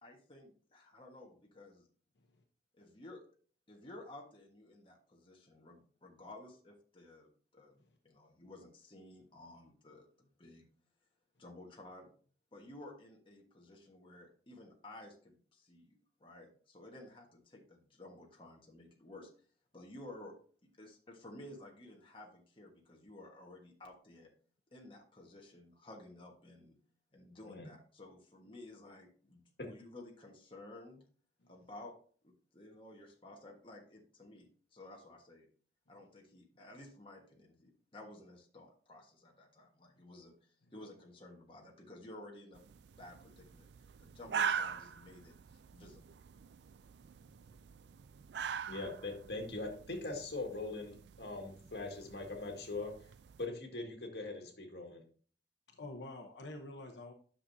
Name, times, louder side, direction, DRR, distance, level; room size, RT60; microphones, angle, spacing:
voice 1, 0.0-1.9 2.8-3.3 3.7-7.8 8.0-10.7 11.4-12.1 12.5-19.3 19.7-20.4 20.6-24.3 24.7-26.8 27.1-31.0 31.5-31.9 32.2-35.5 35.9-42.6 43.0-43.7 44.0-46.1, left 1 dB, 30° left, 0 dB, 1.4 m, -54 dB
sound 1, 42.5-53.5, right 7 dB, 75° right, 0.4 m, -43 dB
voice 2, 48.7-52.9 53.4-55.0, left 2 dB, 65° left, 2 dB, 1.9 m, -41 dB
voice 3, 55.7-57.1, left 2 dB, 80° left, 3 dB, 1.0 m, -48 dB
9.8 x 6.4 x 2.7 m, 0.44 s
head